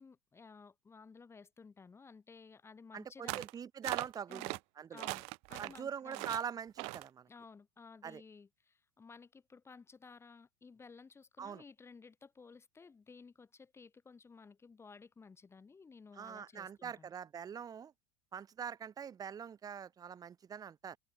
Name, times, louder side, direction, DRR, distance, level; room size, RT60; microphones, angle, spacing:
voice 1, 0.0-3.5 4.3-4.6 4.9-6.3 7.3-17.1, left 5 dB, 20° left, 4.8 m, -56 dB
voice 2, 2.9-5.0 5.6-7.3 8.0-8.2 11.4-11.6 16.1-17.9 18.3-21.0, right 7 dB, 25° right, 3.3 m, -43 dB
sound 1, 3.3-3.5 3.8-4.6 5.0-5.8 6.1-6.4 6.8-7.1, right 33 dB, 50° right, 0.6 m, -40 dB
figure-of-eight pair, 80°, 14 cm